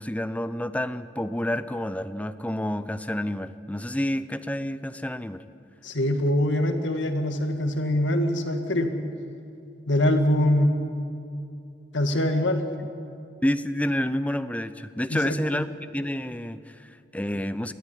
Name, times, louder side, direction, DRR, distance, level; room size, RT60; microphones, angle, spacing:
voice 1, 0.0-5.4 13.4-17.7, left 1 dB, 10° left, 12 dB, 0.6 m, -29 dB
voice 2, 5.8-8.9 9.9-10.7 11.9-12.6 15.1-15.6, left 1 dB, 85° left, 6 dB, 1.9 m, -23 dB
22.0 x 14.5 x 10.0 m, 2.5 s
head